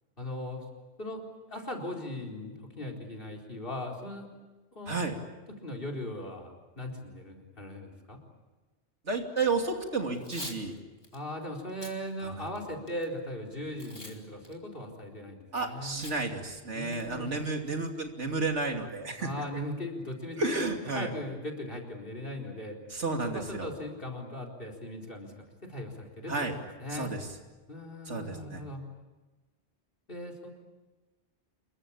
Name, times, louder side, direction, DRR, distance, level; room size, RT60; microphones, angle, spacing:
voice 1, 0.2-0.7 1.0-1.2 1.5-4.3 4.7-5.0 5.6-8.2 11.1-16.1 16.7-17.3 19.2-22.8 23.2-25.3 25.7-27.1 27.7-28.8 30.1-30.5, left 1 dB, 50° left, 4 dB, 4.4 m, -39 dB
voice 2, 9.0-10.7 15.5-19.3 20.4-21.1 22.9-23.7 26.3-26.6 26.9-27.2 28.1-28.6, right 3 dB, 90° right, 3 dB, 3.1 m, -32 dB
Packing tape duct tape / Tearing, 10.1-10.6 11.0-11.2 11.7-12.0 12.5-13.0 13.8-14.2 14.4-14.5 16.0-16.2 16.5-16.6 16.9-17.3, left 1 dB, 20° left, 3.3 m, -43 dB
27.5 x 22.5 x 8.7 m, 1.2 s
omnidirectional pair, 1.2 m